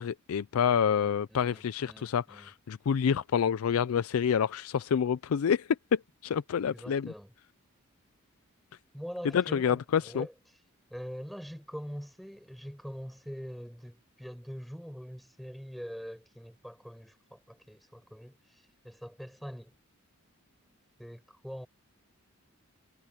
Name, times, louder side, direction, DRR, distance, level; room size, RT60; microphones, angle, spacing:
voice 1, 0.0-7.1 9.3-10.3, left 7 dB, 75° left, 0.4 m, -28 dB
voice 2, 0.6-2.5 6.6-7.3 8.9-10.3 10.9-18.3 18.8-19.7 21.0-21.7, equal, ahead, 6.3 m, -44 dB
head